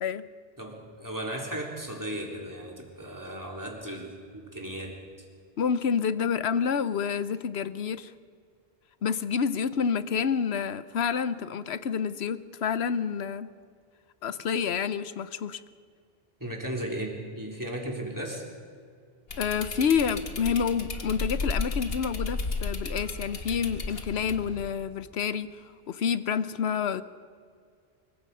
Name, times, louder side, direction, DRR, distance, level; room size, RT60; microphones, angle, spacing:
voice 1, 0.6-5.0 16.4-18.4, right 1 dB, 20° right, 0 dB, 3.4 m, -36 dB
voice 2, 5.6-8.1 9.0-13.5 14.2-15.6 19.4-27.0, left 7 dB, 85° left, 14 dB, 1.1 m, -28 dB
sound 1, 19.3-24.7, left 3 dB, 70° left, 1.8 m, -34 dB
25.0 x 23.0 x 5.5 m, 2.1 s
omnidirectional pair, 1.0 m